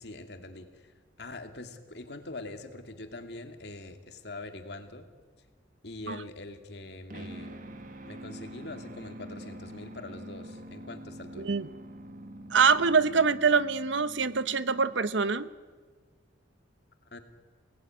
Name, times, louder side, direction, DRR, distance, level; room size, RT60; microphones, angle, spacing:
voice 1, 0.0-5.1 5.8-7.7 8.0-11.6 17.1-17.2, left 2 dB, 60° left, 6 dB, 2.4 m, -43 dB
sound 1, 7.1-15.4, right 1 dB, 45° right, 1.5 m, -45 dB
voice 2, 11.4-11.7 12.5-15.5, right 5 dB, 85° right, 14 dB, 1.0 m, -24 dB
28.0 x 18.5 x 9.3 m, 1.5 s
head